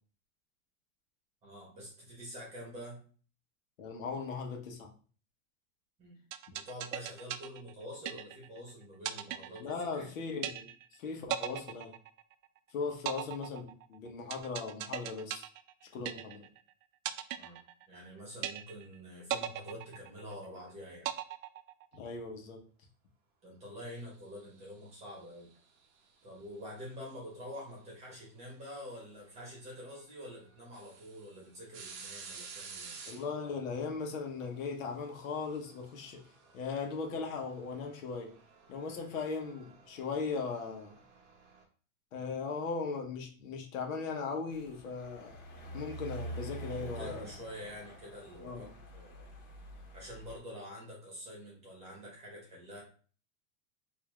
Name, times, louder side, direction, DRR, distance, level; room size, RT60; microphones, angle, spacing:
voice 1, 1.4-3.0 6.0-6.2 6.5-10.1 17.4-17.6 17.9-21.1 23.4-25.5 26.2-33.0 46.7-49.3 49.9-52.8, equal, 15° right, -3 dB, 1.1 m, -47 dB
voice 2, 3.8-4.9 9.6-11.9 12.7-15.4 15.9-16.5 21.9-22.6 33.1-36.2 36.5-38.3 38.7-40.9 42.1-45.4 45.7-47.3 48.4-48.7, left 4 dB, 80° left, 2 dB, 1.1 m, -38 dB
sound 1, 6.3-8.6 9.0-10.1 10.4-11.0 11.3-12.6 13.1-16.6 17.1-18.1 18.4-19.0 19.3-20.6 21.0-22.1, right 11 dB, 80° right, 0.5 m, -38 dB
sound 2, 24.4-25.9 27.7-27.8 29.4-29.5 29.9-30.0 30.5-41.6, right 5 dB, 35° right, 0.7 m, -53 dB
sound 3, 44.5-50.4, equal, 60° left, 1.5 m, -46 dB
4.7 x 2.7 x 2.4 m, 0.41 s
supercardioid pair, 170°, 40 cm